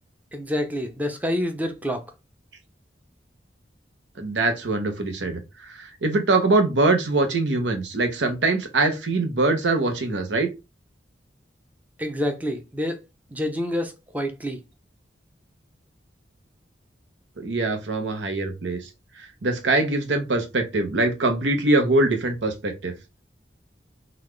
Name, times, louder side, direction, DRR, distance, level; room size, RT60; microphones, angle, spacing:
voice 1, 0.3-2.0 12.0-13.0 13.3-14.6, equal, 10° right, 0.5 m, -27 dB
voice 2, 4.2-10.5 17.4-18.9 19.4-22.9, right 2 dB, 90° right, 0.8 m, -23 dB
3.9 x 2.3 x 3.1 m
head